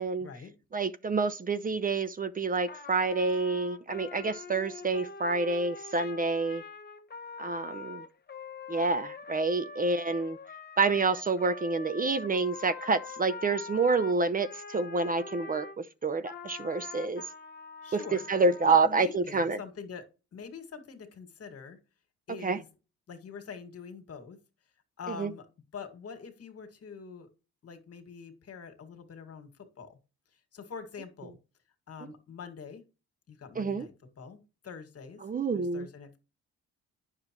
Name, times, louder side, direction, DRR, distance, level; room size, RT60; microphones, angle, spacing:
voice 1, 0.2-0.5 17.8-18.3 18.7-21.8 22.3-22.6 23.1-24.4 25.0-25.5 25.7-27.3 27.6-30.0 30.5-31.4 31.9-32.8 33.3-35.2 35.5-36.2, left 6 dB, 50° left, 2.0 m, -44 dB
voice 2, 0.7-6.6 7.4-8.0 8.7-10.4 10.8-17.2 17.9-18.0 18.3-19.6 22.4-22.6 25.1-25.3 33.6-33.9 35.2-35.9, right 3 dB, 30° right, 0.7 m, -28 dB
Trumpet, 2.7-15.8 16.2-18.8, left 4 dB, 35° left, 1.3 m, -44 dB
9.6 x 6.6 x 3.0 m
cardioid pair, 90°, 30 cm